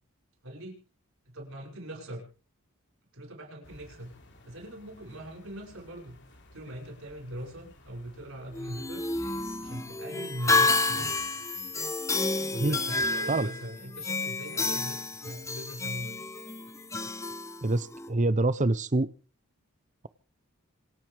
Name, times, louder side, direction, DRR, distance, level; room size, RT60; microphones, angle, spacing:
voice 1, 0.4-0.8 1.3-2.2 3.1-4.2 4.4-6.2 6.5-9.0 9.6-11.1 12.5-16.2, right 1 dB, 65° right, 0 dB, 6.9 m, -41 dB
sound 1, 3.6-10.0, left 1 dB, 55° left, 3.4 m, -55 dB
sound 2, 8.5-18.1, left 3 dB, 15° left, 1.1 m, -30 dB
voice 2, 17.6-19.1, right 2 dB, 35° right, 17 dB, 0.8 m, -25 dB
27.0 x 9.1 x 5.1 m, 0.39 s
head